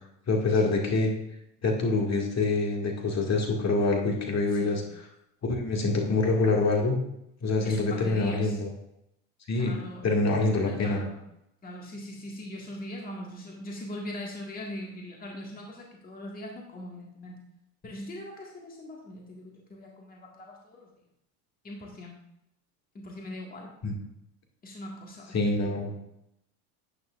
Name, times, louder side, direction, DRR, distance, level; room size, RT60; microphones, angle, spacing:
voice 1, 0.3-1.1 1.6-5.0 5.4-7.0 7.4-8.7 9.5-9.8 10.0-11.0 23.8-23.9 25.3-25.9, left 3 dB, 35° left, 1 dB, 2.1 m, -25 dB
voice 2, 4.5-4.8 7.6-8.6 9.5-10.1 10.5-11.2 11.6-17.4 17.8-20.9 21.6-22.2 22.9-23.7 24.6-25.8, left 1 dB, 20° left, -1 dB, 1.9 m, -41 dB
11.0 x 8.9 x 2.5 m, 0.80 s
hypercardioid pair, 85°, 47 cm